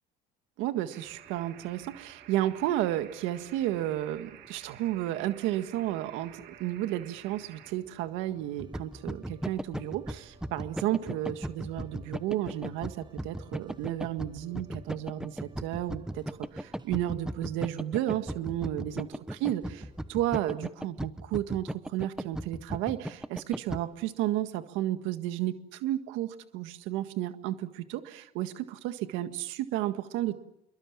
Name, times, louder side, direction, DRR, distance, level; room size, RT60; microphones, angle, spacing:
voice 1, 0.6-30.4, right 13 dB, 75° right, 9 dB, 1.8 m, -32 dB
sound 1, 0.9-7.7, right 11 dB, 60° right, 2.8 m, -52 dB
sound 2, 1.0-20.5, right 3 dB, 20° right, 5.9 m, -57 dB
sound 3, 8.6-23.8, right 1 dB, 5° right, 1.0 m, -36 dB
27.0 x 23.0 x 7.5 m, 0.84 s
cardioid pair, 120°, 20 cm